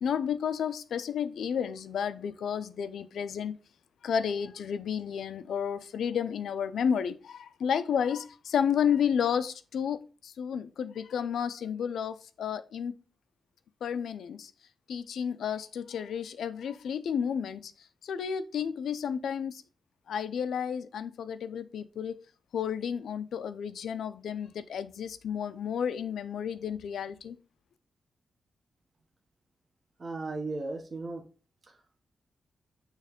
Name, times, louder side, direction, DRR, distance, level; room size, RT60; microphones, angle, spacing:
voice 1, 0.0-3.6 4.0-12.9 13.8-14.5 14.9-17.7 18.0-19.6 20.1-22.2 22.5-27.4, left 8 dB, 85° left, 0.5 m, -31 dB
voice 2, 30.0-31.2 31.7-31.8, right 3 dB, 30° right, 1.0 m, -36 dB
6.5 x 3.2 x 5.1 m
wide cardioid pair, 175°, 0 cm